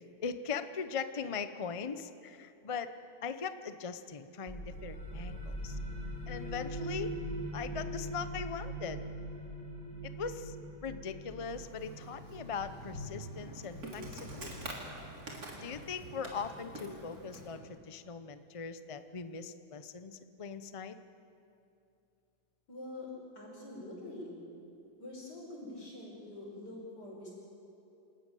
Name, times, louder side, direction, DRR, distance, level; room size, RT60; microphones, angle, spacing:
voice 1, 0.2-2.9 3.2-5.8 6.3-7.2 7.5-9.1 10.2-10.6 10.8-14.7 15.5-20.9, left 6 dB, 55° left, 11 dB, 0.3 m, -40 dB
sound 1, 4.5-15.8, right 1 dB, 5° left, 3.5 m, -42 dB
Insect, 11.4-17.6, right 1 dB, 55° right, 3.8 m, -46 dB
voice 2, 22.7-24.3 25.0-27.3, left 2 dB, 70° left, -2 dB, 6.0 m, -45 dB
27.5 x 14.0 x 9.1 m, 2.7 s
omnidirectional pair, 1.9 m